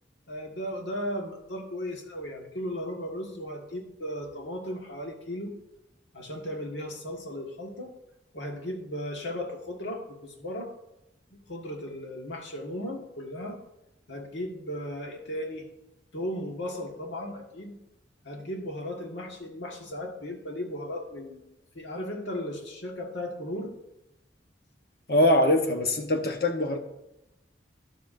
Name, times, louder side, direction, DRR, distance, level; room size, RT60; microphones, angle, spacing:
voice 1, 0.3-5.5 6.1-7.9 8.3-10.7 11.3-13.6 14.1-15.7 16.1-17.7 18.2-21.4 21.7-23.7, left 1 dB, 85° left, 1.7 m, -36 dB
voice 2, 25.1-26.8, left 1 dB, 55° left, 1.1 m, -23 dB
12.0 x 7.5 x 2.7 m
head